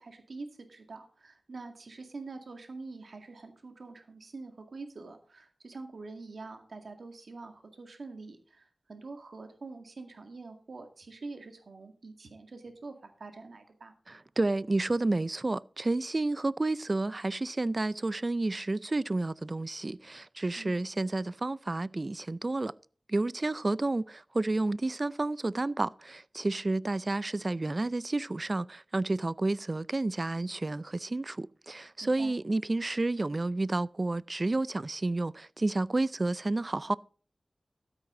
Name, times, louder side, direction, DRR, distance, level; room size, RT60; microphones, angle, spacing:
voice 1, 0.0-13.9 20.6-20.8 32.0-32.3, right 3 dB, 85° right, 2.0 m, -45 dB
voice 2, 14.1-22.7 23.1-37.0, right 2 dB, 40° right, 0.4 m, -30 dB
12.5 x 8.9 x 3.8 m
wide cardioid pair, 65°, 0 cm